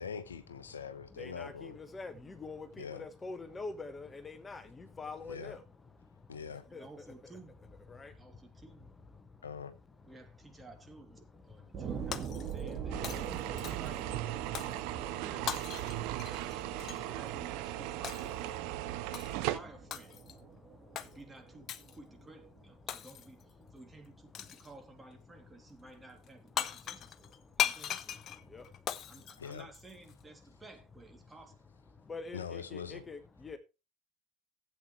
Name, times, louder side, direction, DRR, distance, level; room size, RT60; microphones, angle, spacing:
voice 1, 0.0-1.8 2.8-3.0 5.3-5.5 6.3-6.6 9.4-9.7 29.4-29.7 32.3-33.0, left 6 dB, 85° left, 0.9 m, -42 dB
voice 2, 1.2-5.6 6.7-6.9 7.9-8.1 17.1-17.2 28.5-28.6 32.1-33.6, left 3 dB, 20° left, 1.4 m, -44 dB
voice 3, 2.1-2.5 6.7-7.6 8.1-8.9 10.0-16.1 17.0-18.8 19.4-20.2 21.0-28.0 29.1-31.6, right 2 dB, 15° right, 2.9 m, -55 dB
sound 1, 11.7-22.7 23.2-23.3, right 6 dB, 40° right, 3.0 m, -44 dB
Shatter, 12.1-12.8 13.0-14.0 14.6-14.8 15.5-17.1 18.0-18.4 19.1-19.5 19.9-20.4 21.0-21.1 21.7-22.0 22.9-23.4 24.3-24.7 26.3-26.4 26.6-30.1, left 10 dB, 45° left, 0.8 m, -38 dB
sound 2, 12.9-19.6, right 15 dB, 60° right, 0.8 m, -38 dB
15.5 x 8.3 x 3.2 m
figure-of-eight pair, 70°, 0 cm